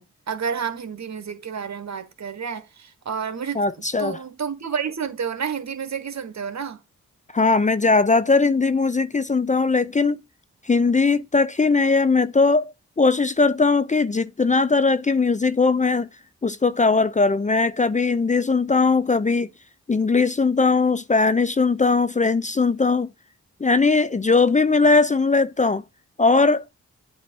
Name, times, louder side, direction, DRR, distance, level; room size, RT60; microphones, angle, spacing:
voice 1, 0.0-6.8, right 7 dB, 60° right, 1.4 m, -30 dB
voice 2, 3.6-4.2 7.3-10.2 10.7-16.1 16.4-19.5 19.9-23.1 23.6-25.8 26.2-26.6, left 4 dB, 25° left, 0.5 m, -19 dB
8.4 x 2.9 x 4.6 m
supercardioid pair, 45°, 32 cm